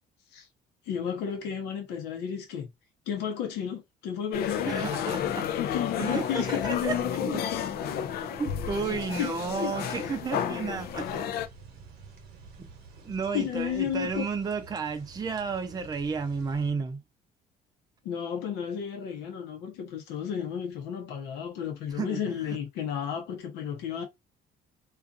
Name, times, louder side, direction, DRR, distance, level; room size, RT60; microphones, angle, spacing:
voice 1, 0.9-2.7 3.1-4.7 5.6-7.6 8.1-8.2 9.2-9.8 11.1-11.2 13.3-14.3 18.0-24.0, left 8 dB, 85° left, 0.9 m, -32 dB
sound 1, 4.3-11.5, left 8 dB, 65° left, 0.4 m, -32 dB
voice 2, 4.7-5.5 6.0-7.4 8.4-11.2 12.6-12.7 13.0-17.0 21.9-22.6, right 5 dB, 25° right, 0.5 m, -32 dB
sound 2, 10.7-16.7, right 4 dB, 70° right, 1.0 m, -50 dB
2.5 x 2.4 x 2.5 m
cardioid pair, 110°, 17 cm